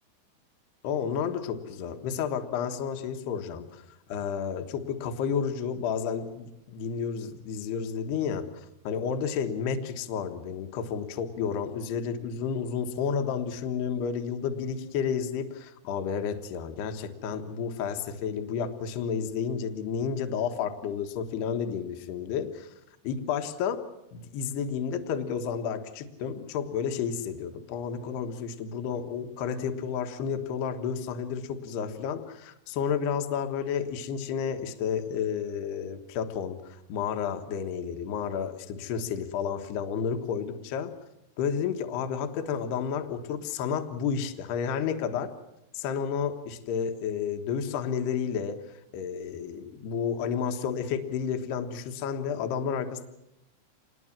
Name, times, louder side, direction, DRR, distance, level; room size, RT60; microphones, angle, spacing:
voice 1, 0.8-3.8 4.1-8.5 8.8-22.7 23.0-23.8 24.1-40.9 41.4-45.3 45.7-48.6 48.9-53.0, left 7 dB, 70° left, 6 dB, 3.2 m, -31 dB
27.5 x 21.0 x 7.4 m, 0.87 s
omnidirectional pair, 5.1 m